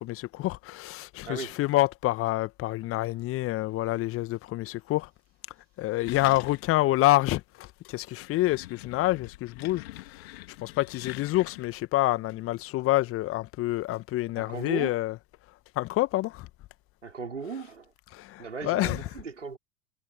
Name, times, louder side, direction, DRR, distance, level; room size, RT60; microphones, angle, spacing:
voice 1, 0.0-5.1 5.8-10.4 10.6-15.1 15.8-16.5 18.1-19.0, left 17 dB, 40° left, 1.7 m, -27 dB
voice 2, 1.3-1.6 14.3-15.0 17.0-17.9 18.4-19.6, right 5 dB, 80° right, 5.0 m, -37 dB
sound 1, 6.1-6.9 7.3-7.4 8.0-11.8, left 18 dB, 60° left, 3.6 m, -44 dB
figure-of-eight pair, 80°, 36 cm